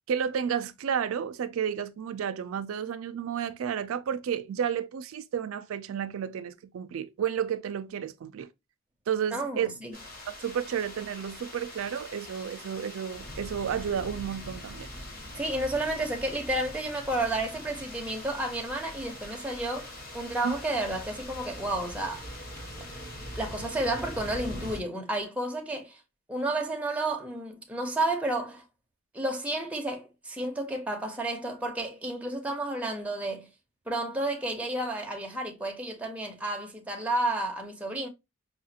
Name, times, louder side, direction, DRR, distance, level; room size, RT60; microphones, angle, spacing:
voice 1, 0.1-8.5 9.1-9.7 10.4-14.9 20.4-20.5, right 8 dB, 85° right, 0.4 m, -31 dB
voice 2, 9.3-10.0 15.3-22.2 23.4-26.0 26.3-28.6 29.1-33.5 33.9-38.1, right 2 dB, 5° right, 0.7 m, -31 dB
sound 1, 9.9-24.8, left 1 dB, 45° left, 1.6 m, -42 dB
4.8 x 2.4 x 2.7 m
head